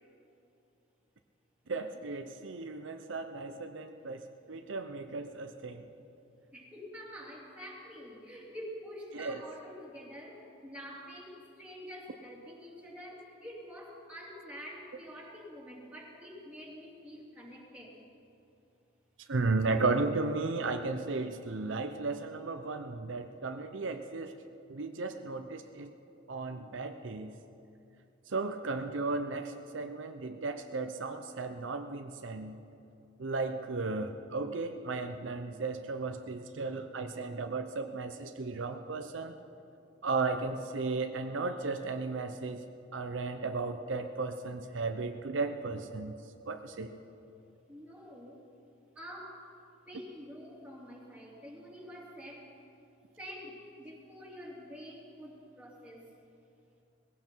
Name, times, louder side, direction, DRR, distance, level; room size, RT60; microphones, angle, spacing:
voice 1, 1.7-5.9 9.1-9.4 19.3-24.3 24.7-25.9 26.3-27.3 28.3-32.5 33.2-39.3 40.0-42.7 42.9-46.1 46.5-46.9, right 3 dB, 75° right, 7 dB, 0.7 m, -35 dB
voice 2, 6.5-18.0 47.7-48.5 48.9-49.5 49.9-52.6 53.2-56.0, equal, 5° right, -4 dB, 3.0 m, -47 dB
19.5 x 16.0 x 4.6 m, 2.7 s
head